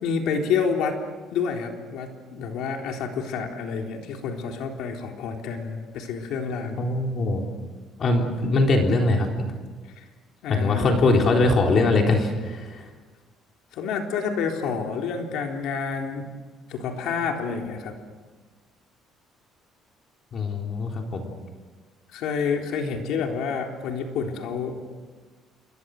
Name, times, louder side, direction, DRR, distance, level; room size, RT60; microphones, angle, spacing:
voice 1, 0.0-1.0 1.3-6.8 10.0-10.1 10.4-10.9 13.7-16.3 16.7-18.0 22.1-24.8, left 6 dB, 75° left, 2 dB, 3.8 m, -28 dB
voice 2, 6.8-7.4 8.0-9.5 10.5-12.8 20.3-21.3, left 2 dB, 40° left, 2 dB, 3.8 m, -22 dB
28.5 x 24.0 x 6.6 m, 1.4 s
cardioid pair, 145°, 0 cm